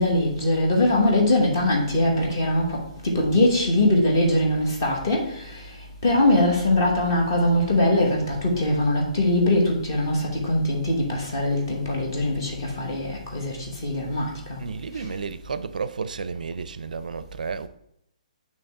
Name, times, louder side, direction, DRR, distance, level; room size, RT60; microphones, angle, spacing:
voice 1, 0.0-2.8 3.0-5.4 6.0-14.6, left 1 dB, 25° left, 1.1 m, -22 dB
voice 2, 14.6-17.7, right 5 dB, 75° right, 0.4 m, -32 dB
8.9 x 3.1 x 3.5 m
hypercardioid pair, 180°, 4 cm